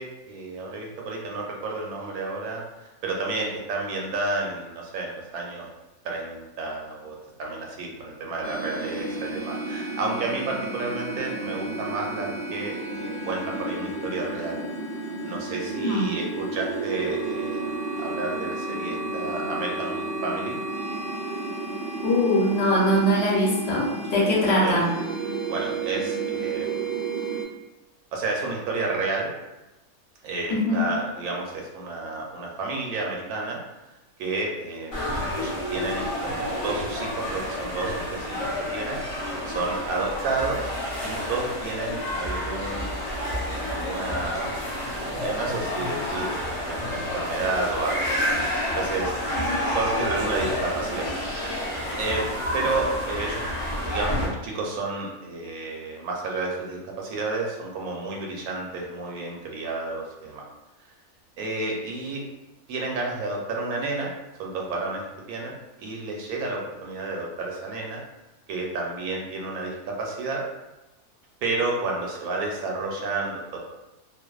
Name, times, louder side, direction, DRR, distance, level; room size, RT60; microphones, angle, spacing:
voice 1, 0.0-5.7 6.0-14.6 15.2-20.6 24.4-24.8 25.5-26.7 28.1-29.3 30.2-33.6 34.2-38.4 38.7-39.0 39.5-40.7 41.0-44.5 45.2-46.4 46.7-48.1 48.7-51.1 51.9-52.2 52.5-53.4 53.8-60.4 61.4-62.2 62.7-64.1 64.4-65.5 65.8-68.0 68.5-70.4 71.4-73.6, right 3 dB, 80° right, -1 dB, 1.0 m, -31 dB
sound 1, 8.4-27.4, right 3 dB, 60° right, 0.5 m, -32 dB
voice 2, 22.0-24.9 30.5-30.8 49.3-49.7, left 1 dB, 55° left, -5 dB, 0.9 m, -22 dB
sound 2, 34.9-54.3, left 1 dB, 40° left, 0.5 m, -29 dB
2.5 x 2.1 x 2.3 m, 1.0 s
omnidirectional pair, 1.6 m